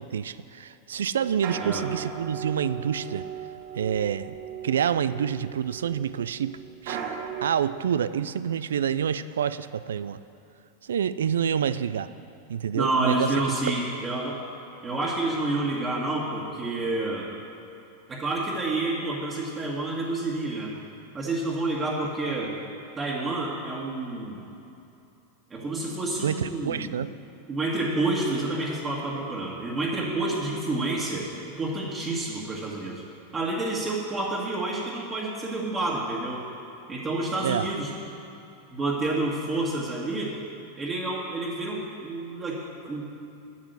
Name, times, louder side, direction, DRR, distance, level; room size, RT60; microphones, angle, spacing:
voice 1, 0.0-3.3 3.7-4.3 4.6-6.6 6.8-10.2 10.8-12.1 12.5-13.3 13.9-14.0 26.2-27.1 37.4-37.7, right 8 dB, 85° right, 15 dB, 0.3 m, -27 dB
sound 1, 1.2-7.5, right 8 dB, 60° right, 1.0 m, -37 dB
voice 2, 12.7-14.4 14.8-17.3 18.1-20.7 21.1-22.6 23.0-24.5 25.5-27.0 27.5-31.3 31.6-33.0 33.3-36.4 36.9-37.9 38.7-40.3 40.8-43.0, right 2 dB, 25° right, -5 dB, 1.7 m, -29 dB
8.6 x 6.1 x 8.0 m, 2.8 s
hypercardioid pair, 105°, 0 cm